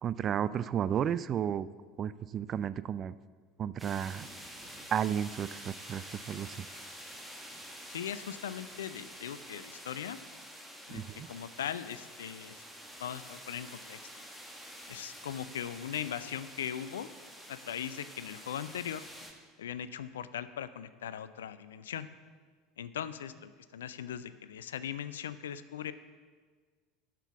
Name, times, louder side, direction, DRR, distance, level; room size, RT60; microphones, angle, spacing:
voice 1, 0.0-1.7 2.0-3.1 3.6-4.3 4.9-6.6 10.9-11.3, right 9 dB, 35° right, 16 dB, 0.3 m, -33 dB
sound 1, 3.8-19.3, equal, ahead, 1.3 m, -48 dB
voice 2, 7.9-10.2 10.9-12.6 13.0-14.2 14.9-17.1 17.5-19.0 19.6-22.1 22.8-25.9, left 9 dB, 70° left, 14 dB, 0.4 m, -39 dB
7.9 x 6.0 x 6.9 m, 1.5 s
figure-of-eight pair, 70°, 0 cm